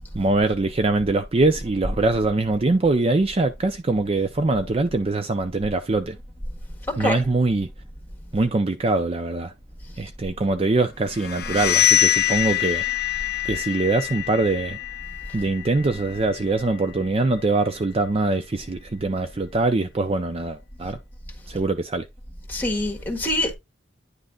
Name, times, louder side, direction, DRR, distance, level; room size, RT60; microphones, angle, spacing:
voice 1, 0.1-6.2 7.0-7.7 8.3-9.5 10.0-12.8 13.4-14.8 15.3-21.0 21.5-22.1, right 2 dB, 30° right, 0.5 m, -23 dB
sound 1, 11.2-16.8, left 12 dB, 60° left, 0.6 m, -25 dB
voice 2, 22.5-23.5, left 1 dB, 10° left, 1.7 m, -24 dB
9.7 x 3.2 x 3.8 m
head